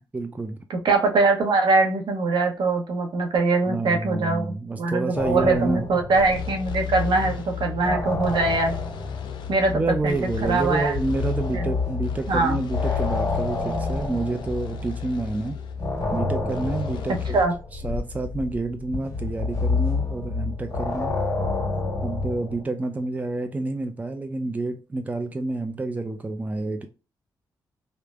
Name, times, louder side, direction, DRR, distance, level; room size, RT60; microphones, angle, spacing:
voice 1, 0.1-0.6 3.7-5.9 9.7-15.6 16.1-17.4 17.8-21.1 22.0-26.9, right 2 dB, 20° right, 0.4 m, -28 dB
voice 2, 0.7-8.7 9.5-10.9 11.5-11.7 12.3-12.6 17.1-17.5, right 3 dB, 70° right, 0.8 m, -22 dB
sound 1, 5.1-7.0 7.3-15.2 15.8-22.6, left 3 dB, 45° left, 1.4 m, -29 dB
sound 2, 5.5-17.5, left 6 dB, 75° left, 0.4 m, -35 dB
3.2 x 2.1 x 2.3 m
cardioid pair, 75°, 8 cm